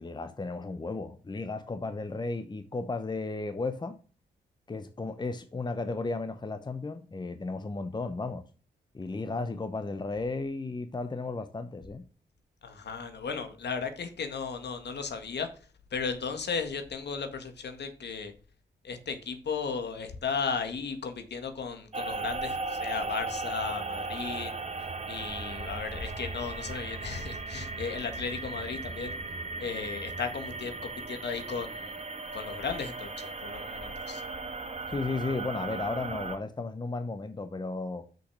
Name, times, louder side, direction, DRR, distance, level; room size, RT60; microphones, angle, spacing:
voice 1, 0.0-4.0 4.7-8.4 8.9-12.0 34.9-38.0, left 3 dB, 25° left, 0.8 m, -34 dB
voice 2, 12.6-15.5 15.9-18.3 18.8-24.5 25.1-29.2 29.6-32.0 32.3-34.2, left 5 dB, 65° left, 1.8 m, -35 dB
sound 1, 21.9-36.4, right 3 dB, 35° right, 1.3 m, -37 dB
6.3 x 5.9 x 6.3 m
cardioid pair, 65°, 19 cm